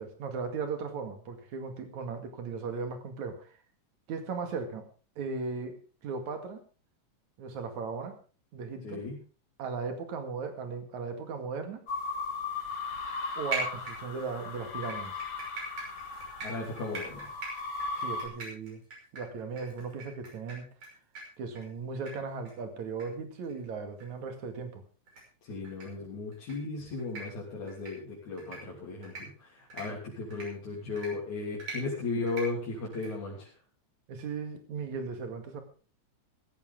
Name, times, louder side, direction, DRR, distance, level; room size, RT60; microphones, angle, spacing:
voice 1, 0.0-3.5 4.1-4.9 5.2-5.8 6.0-6.6 7.4-8.2 8.5-9.0 9.6-11.8 13.4-15.2 18.0-18.8 19.1-20.7 21.4-24.8 34.1-35.6, right 5 dB, 70° right, 7 dB, 3.4 m, -37 dB
voice 2, 8.8-9.2 16.4-17.3 25.4-33.5, left 3 dB, 70° left, -5 dB, 4.7 m, -36 dB
sound 1, 11.9-18.3, left 4 dB, 50° left, 2.9 m, -37 dB
sound 2, 13.5-14.3 14.8-20.9 21.1-21.2 21.5-21.7 22.1-22.2 22.4-22.5 23.0-23.1 23.4-23.5 24.0-24.1 25.1-25.2 25.6-25.8 26.3-26.5 27.0-27.2 27.7-27.9 28.4-28.6 29.0-29.2 29.7-29.8 30.3-30.4 31.0-31.1 31.6-31.8 32.3-32.4 32.9-33.1, right 4 dB, 55° right, 7.1 m, -39 dB
16.0 x 14.5 x 3.7 m, 0.38 s
omnidirectional pair, 3.5 m